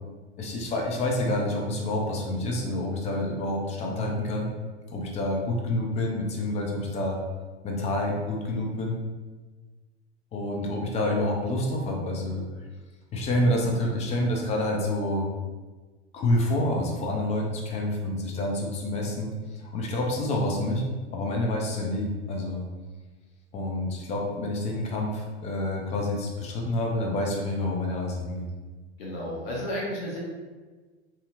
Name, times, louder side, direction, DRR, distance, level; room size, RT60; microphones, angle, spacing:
voice 1, 0.4-4.5 4.9-7.2 7.6-8.9 10.3-12.4 13.1-15.3 16.1-19.3 19.6-20.8 21.1-22.6 23.5-28.5, left 1 dB, 20° left, 0 dB, 0.4 m, -28 dB
voice 2, 29.0-30.2, equal, 60° left, -3 dB, 0.9 m, -32 dB
2.7 x 2.7 x 2.5 m, 1.3 s
hypercardioid pair, 95°, 34 cm